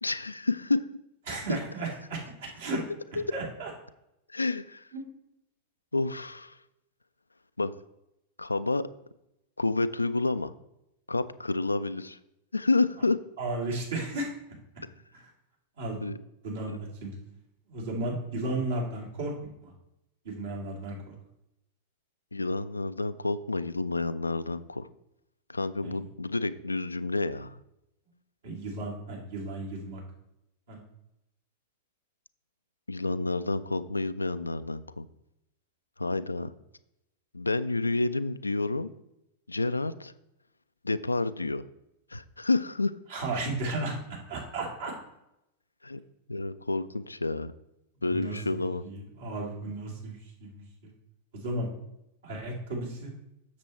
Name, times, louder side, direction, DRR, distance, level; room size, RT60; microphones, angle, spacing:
voice 1, 0.0-0.8 3.2-3.3 4.3-4.9 5.9-6.6 7.6-7.7 8.4-8.8 9.6-10.5 11.1-12.2 12.5-13.2 16.0-16.2 16.7-16.8 22.3-24.9 25.5-27.6 32.9-35.1 36.0-36.5 37.3-38.9 39.5-40.1 40.8-41.6 42.1-42.9 45.8-46.0 46.3-47.5 48.0-48.8, left 3 dB, 80° left, 13 dB, 0.3 m, -29 dB
voice 2, 1.3-2.8 3.3-3.7 4.9-5.1 13.4-14.3 15.1-15.2 15.8-16.0 16.4-17.1 17.7-19.3 19.6-19.7 20.2-21.1 25.8-26.0 28.4-30.0 30.7-30.8 43.1-44.0 44.3-44.9 48.1-48.4 48.8-50.9 51.3-51.7 52.2-53.1, right 2 dB, 60° right, -2 dB, 2.7 m, -34 dB
7.4 x 6.7 x 4.3 m, 0.85 s
figure-of-eight pair, 90°, 0 cm